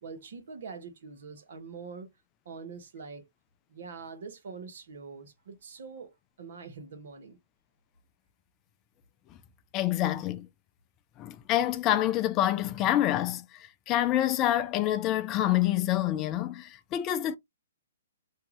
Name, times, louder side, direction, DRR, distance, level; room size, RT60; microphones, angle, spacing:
voice 1, 0.0-2.1 2.4-3.3 3.7-7.4, right 5 dB, 65° right, 0.9 m, -44 dB
voice 2, 9.7-10.5 11.2-17.4, left 13 dB, 25° left, 0.3 m, -27 dB
2.7 x 2.3 x 2.9 m
hypercardioid pair, 135°, 0 cm